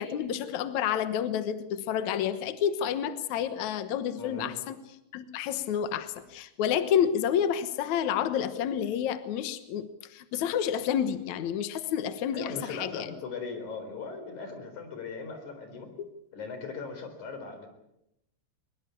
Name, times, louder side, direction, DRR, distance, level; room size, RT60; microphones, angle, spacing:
voice 1, 0.0-4.8 5.1-13.1 16.0-16.1, left 9 dB, 80° left, 11 dB, 1.6 m, -29 dB
voice 2, 4.2-4.6 12.3-15.9 16.3-17.7, left 4 dB, 45° left, 7 dB, 5.2 m, -39 dB
22.5 x 22.0 x 8.4 m, 0.82 s
omnidirectional pair, 5.2 m